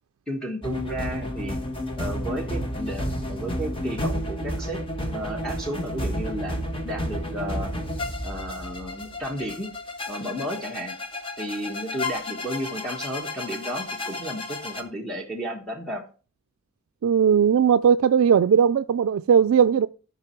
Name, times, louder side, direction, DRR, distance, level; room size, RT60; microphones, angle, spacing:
voice 1, 0.3-1.6 2.0-6.6 6.8-7.7 8.2-9.7 10.1-11.0 11.4-16.0, equal, 5° left, 1.4 m, -33 dB
sound 1, 0.6-14.8, left 1 dB, 25° left, 1.3 m, -31 dB
voice 2, 17.0-19.9, right 7 dB, 80° right, 0.3 m, -18 dB
13.0 x 5.3 x 4.6 m
head